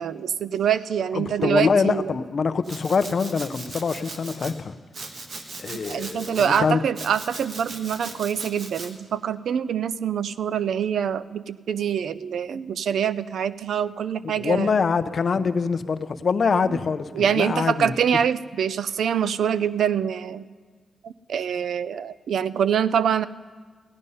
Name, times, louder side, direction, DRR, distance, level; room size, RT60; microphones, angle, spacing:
voice 1, 0.0-2.1 5.9-14.7 17.1-20.5 21.0-23.3, right 8 dB, 80° right, 16 dB, 0.4 m, -25 dB
voice 2, 1.1-4.7 5.6-6.8 14.2-17.9, left 5 dB, 50° left, 10 dB, 0.6 m, -24 dB
Domestic sounds home sounds, 2.6-4.5 4.9-6.6 7.0-8.9, right 3 dB, 55° right, 1.3 m, -39 dB
16.0 x 11.0 x 5.5 m, 1.5 s
wide cardioid pair, 125°, 0 cm